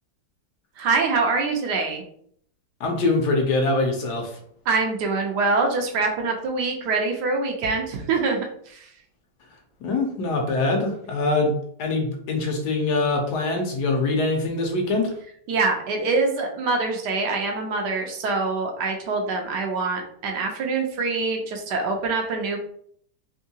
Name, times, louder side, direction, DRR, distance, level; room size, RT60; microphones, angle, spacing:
voice 1, 0.8-2.0 4.7-8.9 15.5-22.6, right 3 dB, 75° right, 2 dB, 1.2 m, -24 dB
voice 2, 2.8-4.3 9.8-11.5 11.8-15.1, left 3 dB, 70° left, 2 dB, 1.2 m, -23 dB
3.6 x 2.6 x 2.7 m, 0.64 s
omnidirectional pair, 1.9 m